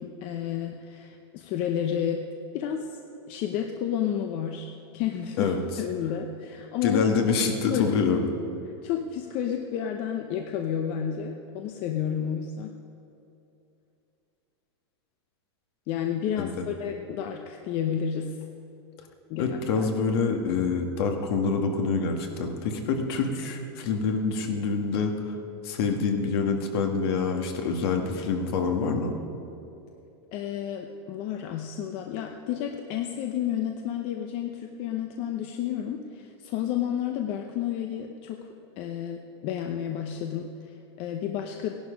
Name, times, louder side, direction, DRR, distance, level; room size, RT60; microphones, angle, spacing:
voice 1, 0.0-2.2 2.5-3.0 3.3-7.4 7.7-8.0 8.8-12.7 15.9-18.4 19.3-19.9 30.3-38.4 38.8-41.7, left 9 dB, 40° left, 4 dB, 0.8 m, -31 dB
voice 2, 6.8-8.2 16.4-16.5 19.4-25.1 25.6-29.1, left 5 dB, 60° left, 4 dB, 1.8 m, -26 dB
16.5 x 11.5 x 5.2 m, 2.8 s
supercardioid pair, 145°, 14 cm